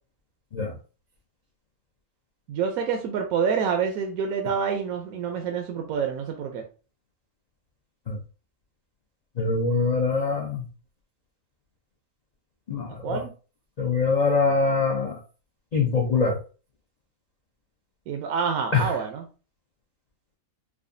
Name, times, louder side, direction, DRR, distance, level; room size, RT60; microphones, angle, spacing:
voice 1, 2.5-6.6 13.0-13.3 18.1-19.2, right 6 dB, 75° right, 4 dB, 1.0 m, -27 dB
voice 2, 9.4-10.7 12.7-13.2 13.8-15.2 15.7-16.4 18.7-18.9, left 4 dB, 60° left, -1 dB, 0.4 m, -23 dB
4.8 x 2.3 x 2.6 m, 0.35 s
omnidirectional pair, 1.6 m